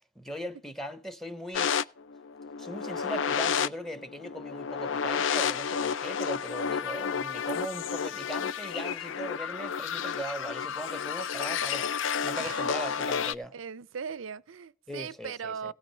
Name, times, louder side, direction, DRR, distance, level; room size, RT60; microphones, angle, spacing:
voice 1, 0.0-1.8 2.6-11.9 12.2-13.6 14.9-15.7, right 1 dB, ahead, 0.7 m, -39 dB
sound 1, 1.5-13.3, left 7 dB, 75° left, 0.5 m, -31 dB
voice 2, 12.4-12.7 13.5-15.7, right 6 dB, 85° right, 0.5 m, -39 dB
17.5 x 5.9 x 5.5 m
head